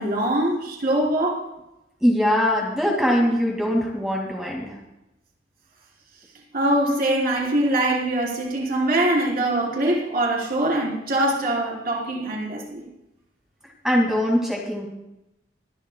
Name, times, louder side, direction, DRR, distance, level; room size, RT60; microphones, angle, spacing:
voice 1, 0.0-1.4 6.5-12.8, right 1 dB, 55° right, -3 dB, 3.9 m, -23 dB
voice 2, 2.0-4.8 13.8-14.9, equal, 5° right, -2 dB, 2.2 m, -22 dB
24.5 x 11.5 x 2.3 m, 0.90 s
head